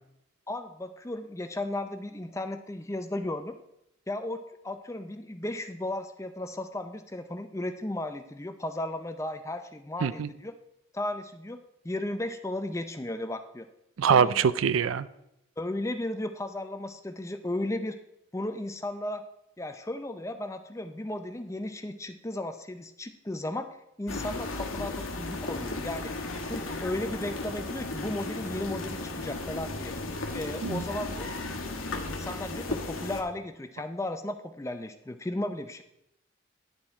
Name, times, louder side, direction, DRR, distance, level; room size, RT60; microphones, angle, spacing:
voice 1, 0.5-3.6 4.1-10.5 10.9-13.7 14.1-14.4 15.6-18.0 18.3-19.2 19.6-23.7 24.0-26.1 26.5-29.9 30.3-31.3 32.0-35.8, left 1 dB, 15° left, 8 dB, 0.5 m, -35 dB
voice 2, 14.0-15.1 30.6-30.8, right 7 dB, 85° right, 17 dB, 0.4 m, -23 dB
sound 1, 24.1-33.2, left 2 dB, 85° left, 1.3 m, -35 dB
10.5 x 7.0 x 4.4 m, 0.83 s
head